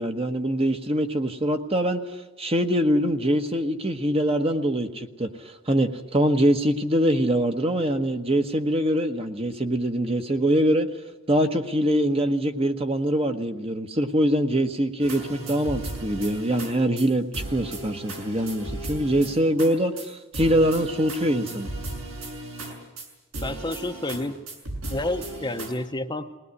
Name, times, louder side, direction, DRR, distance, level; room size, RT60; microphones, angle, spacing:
voice 1, 0.0-2.0 2.4-10.9 11.3-21.7, equal, 30° right, 6 dB, 1.2 m, -23 dB
sound 1, 15.0-16.7 17.0-17.1 17.3-19.7 20.0-20.1 20.3-23.1 23.3-24.2 24.5-25.7, right 2 dB, 75° right, 6.4 m, -35 dB
voice 2, 23.4-24.4 24.9-26.4, left 1 dB, 20° left, 6 dB, 0.9 m, -30 dB
21.0 x 19.0 x 9.7 m, 1.1 s
head